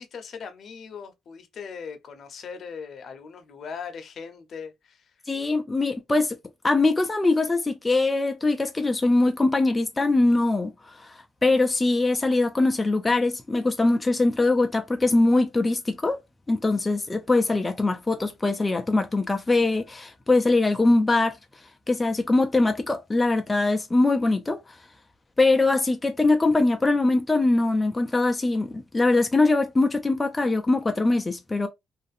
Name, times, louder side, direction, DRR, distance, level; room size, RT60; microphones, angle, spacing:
voice 1, 0.0-5.1, left 6 dB, 60° left, 0.6 m, -39 dB
voice 2, 5.3-6.4 6.6-16.2 16.5-21.4 21.9-24.6 25.4-31.7, left 2 dB, 20° left, 0.3 m, -22 dB
2.5 x 2.4 x 2.4 m
cardioid pair, 90°, 0 cm